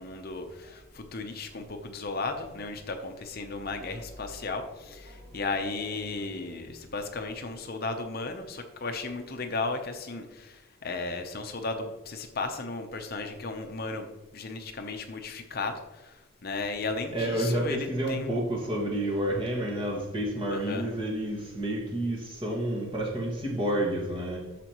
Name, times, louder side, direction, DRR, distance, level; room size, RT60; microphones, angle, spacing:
voice 1, 0.0-14.1 14.3-18.3 20.5-20.9, left 3 dB, 45° left, 5 dB, 0.8 m, -35 dB
voice 2, 17.1-24.4, right 1 dB, 25° right, -1 dB, 1.8 m, -29 dB
13.5 x 5.1 x 3.0 m, 1.2 s
head